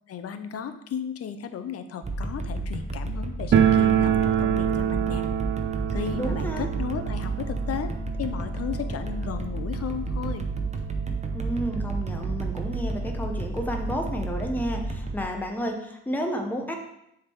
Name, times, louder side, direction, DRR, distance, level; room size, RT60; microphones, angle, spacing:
voice 1, 0.1-5.2 5.9-7.9 8.2-10.5, left 7 dB, 50° left, 9 dB, 0.7 m, -34 dB
sound 1, 2.0-15.2, right 3 dB, 25° right, 0.8 m, -31 dB
sound 2, 3.5-10.2 10.5-10.6 10.8-10.9 11.7-11.8 12.1-13.3, right 9 dB, 40° right, 0.4 m, -26 dB
voice 2, 6.1-6.7 11.3-16.7, equal, 5° left, 2 dB, 0.9 m, -31 dB
7.1 x 3.7 x 4.6 m, 0.80 s
cardioid pair, 90°, 30 cm